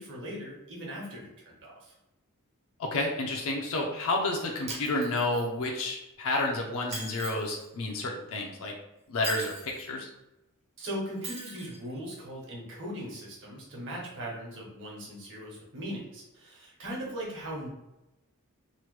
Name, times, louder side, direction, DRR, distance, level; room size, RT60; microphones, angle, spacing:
voice 1, 0.0-1.9 10.8-17.7, equal, 55° right, -3 dB, 1.0 m, -39 dB
voice 2, 2.8-8.7 9.1-10.1, left 2 dB, 65° left, 1 dB, 0.5 m, -30 dB
Shatter, 4.7-5.7 6.9-7.7 9.2-9.9 11.2-11.8, right 2 dB, 30° right, 0.6 m, -40 dB
3.0 x 2.1 x 3.1 m, 0.93 s
head